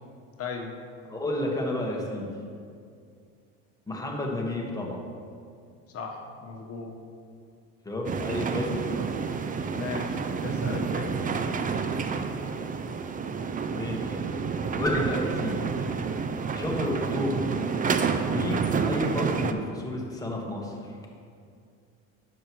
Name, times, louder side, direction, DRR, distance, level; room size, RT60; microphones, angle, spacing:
voice 1, 0.4-0.7 5.9-6.9 9.7-11.3, left 5 dB, 45° left, 1 dB, 1.3 m, -37 dB
voice 2, 1.1-2.3 3.9-5.0 7.8-8.9 13.7-14.2 14.8-15.7 16.5-17.6 18.2-21.0, left 1 dB, 10° left, -1 dB, 1.5 m, -31 dB
sound 1, 8.0-19.5, right 5 dB, 25° right, 0.5 m, -29 dB
10.0 x 7.1 x 3.1 m, 2.3 s
supercardioid pair, 95°, 33 cm